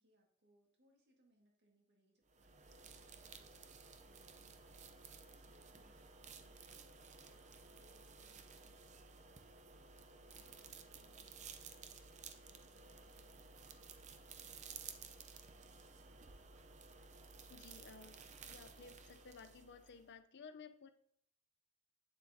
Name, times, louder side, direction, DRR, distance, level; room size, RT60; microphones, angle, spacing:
voice 1, 0.0-14.4, right 1 dB, 50° right, 1 dB, 1.9 m, -76 dB
sound 1, 2.3-20.1, right 5 dB, 30° right, 0.6 m, -56 dB
Ringtone, 4.3-11.1, right 2 dB, 80° right, 2.9 m, -82 dB
voice 2, 17.5-20.9, left 5 dB, 50° left, 10 dB, 0.6 m, -56 dB
8.7 x 7.5 x 2.7 m, 0.67 s
head